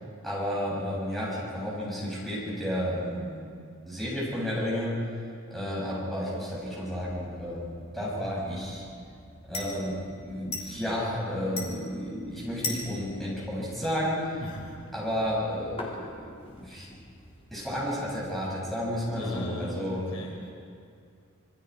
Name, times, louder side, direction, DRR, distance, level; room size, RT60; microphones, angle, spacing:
voice 1, 0.2-5.1 5.5-8.8 9.5-14.4 14.9-16.9 17.5-20.0, equal, ahead, -7 dB, 7.5 m, -32 dB
sound 1, 6.6-19.4, left 2 dB, 30° left, 3.3 m, -43 dB
voice 2, 14.4-14.8 19.1-20.5, equal, 90° left, -1 dB, 4.7 m, -38 dB
27.5 x 22.5 x 5.0 m, 2.3 s
head